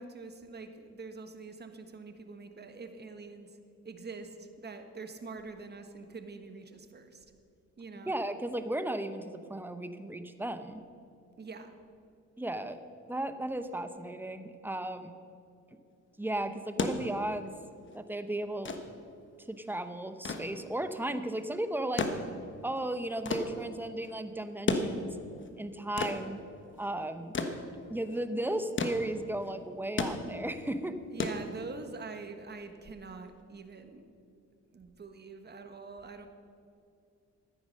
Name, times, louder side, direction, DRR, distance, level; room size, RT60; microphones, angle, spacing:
voice 1, 0.0-3.6 3.8-7.3 7.8-8.1 11.4-11.8 31.1-34.0 34.7-36.3, right 4 dB, 35° right, 7 dB, 1.4 m, -45 dB
voice 2, 8.1-10.8 12.4-12.8 13.1-15.1 16.2-17.5 17.9-18.7 19.5-22.1 22.6-25.1 25.6-26.4 26.8-27.3 27.9-31.0, right 1 dB, 5° right, 9 dB, 0.9 m, -35 dB
sound 1, 16.5-32.1 33.3-33.4, left 3 dB, 40° left, 1.3 m, -36 dB
13.5 x 9.5 x 6.5 m, 2.5 s
cardioid pair, 90°, 30 cm